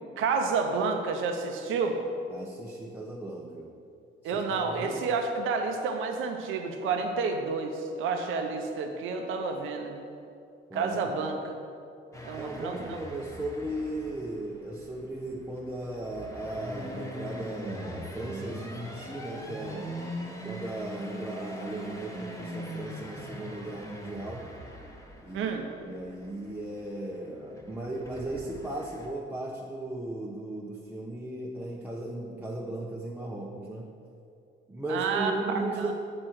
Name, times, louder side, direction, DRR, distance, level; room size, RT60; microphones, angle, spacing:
voice 1, 0.2-2.0 4.2-10.0 10.7-11.5 12.2-13.0 25.3-25.7 34.9-35.3 35.8-35.9, right 4 dB, 90° right, 4 dB, 0.7 m, -30 dB
voice 2, 2.3-3.7 4.2-5.0 10.7-11.4 12.3-19.9 20.4-24.5 25.2-25.5 25.8-33.9 34.7-35.9, right 2 dB, 10° right, -4 dB, 0.8 m, -36 dB
sound 1, 12.1-29.1, equal, 15° left, 1.3 m, -42 dB
7.8 x 4.3 x 6.3 m, 2.5 s
cardioid pair, 90°, 20 cm